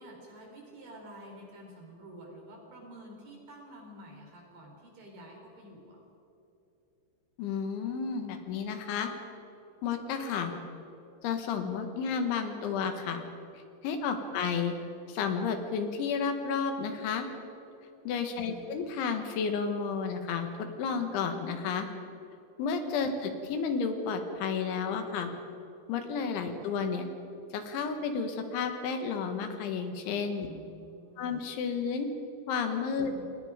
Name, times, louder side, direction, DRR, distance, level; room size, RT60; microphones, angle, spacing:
voice 1, 0.0-6.0 14.3-14.4 18.4-18.7 23.1-23.2 30.5-31.4 33.0-33.2, right 1 dB, 50° right, 0 dB, 5.9 m, -49 dB
voice 2, 7.4-9.1 9.8-10.5 11.2-13.2 13.8-14.7 15.1-17.3 18.1-21.9 22.6-25.3 25.9-27.1 27.5-30.5 31.2-32.1 32.5-33.1, left 6 dB, 80° left, 6 dB, 3.9 m, -32 dB
29.5 x 21.5 x 5.1 m, 2.9 s
omnidirectional pair, 5.4 m